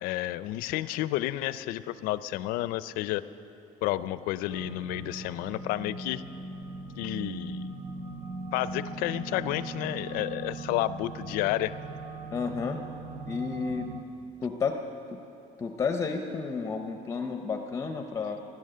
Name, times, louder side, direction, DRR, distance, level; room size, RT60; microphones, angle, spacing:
voice 1, 0.0-3.2 3.8-6.2 7.0-7.7 8.5-11.8, left 15 dB, 90° left, 15 dB, 0.5 m, -31 dB
sound 1, 4.5-14.0, right 3 dB, 90° right, 1.0 m, -39 dB
voice 2, 12.3-12.8 13.3-13.9 14.4-14.8 15.1-15.2 15.6-18.4, left 5 dB, 20° left, 5 dB, 0.6 m, -31 dB
16.0 x 11.0 x 6.6 m, 2.9 s
cardioid pair, 170°, 14 cm